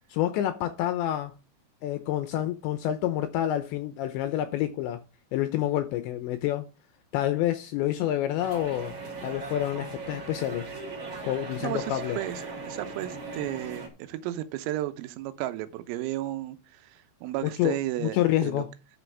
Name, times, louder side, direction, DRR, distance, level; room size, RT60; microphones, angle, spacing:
voice 1, 0.1-1.3 1.8-5.0 5.3-6.7 7.1-8.9 9.2-10.7 11.2-12.2 17.4-18.7, left 13 dB, 85° left, 2.6 m, -28 dB
sound 1, 8.4-13.9, right 3 dB, 35° right, 3.3 m, -38 dB
voice 2, 11.6-18.6, right 14 dB, 90° right, 3.6 m, -34 dB
11.5 x 6.2 x 4.7 m
omnidirectional pair, 6.0 m